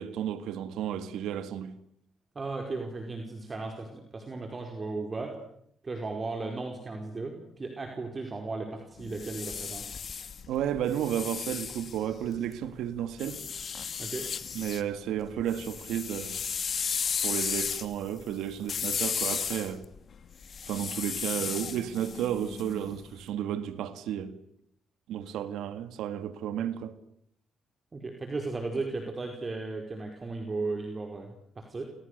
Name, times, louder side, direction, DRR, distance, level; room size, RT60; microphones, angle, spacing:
voice 1, 0.0-1.8 10.5-13.4 14.5-16.4 17.2-19.9 20.7-24.4 25.1-27.0, right 10 dB, 85° right, 2.1 m, -32 dB
voice 2, 2.3-5.4 5.8-9.9 14.0-14.3 27.9-31.8, right 3 dB, 30° right, 5.0 m, -35 dB
sound 1, 9.0-12.5 13.2-14.8 15.2-23.1, left 6 dB, 50° left, 2.6 m, -34 dB
30.0 x 28.5 x 6.8 m
cardioid pair, 90°, 0 cm